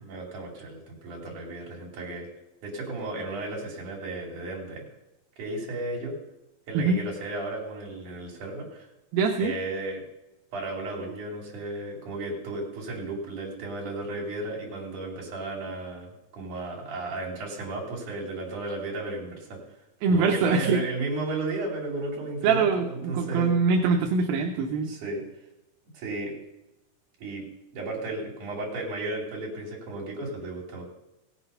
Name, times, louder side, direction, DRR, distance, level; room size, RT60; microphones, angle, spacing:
voice 1, 0.0-2.3 2.6-4.8 5.4-6.2 6.7-8.9 9.4-10.0 10.5-19.6 20.1-23.5 24.8-25.2 25.9-26.3 27.2-27.5 27.7-30.8, right 2 dB, 55° right, -3 dB, 4.3 m, -34 dB
voice 2, 9.1-9.5 20.0-20.8 22.4-24.9, right 4 dB, 80° right, 3 dB, 2.6 m, -23 dB
17.0 x 8.2 x 5.5 m, 0.94 s
omnidirectional pair, 4.2 m